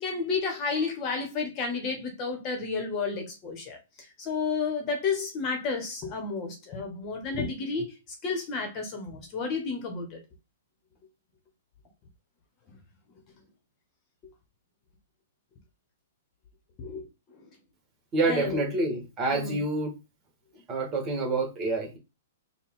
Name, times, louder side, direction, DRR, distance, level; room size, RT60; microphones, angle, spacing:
voice 1, 0.0-3.8 4.2-8.0 8.2-10.2 12.7-12.8 16.8-17.1 17.4-17.5 18.3-18.7 19.3-19.6, left 4 dB, 35° left, 1.3 m, -31 dB
voice 2, 18.1-20.0 20.7-22.0, right 2 dB, 25° right, 1.7 m, -27 dB
4.2 x 2.4 x 3.7 m
hypercardioid pair, 125°, 0 cm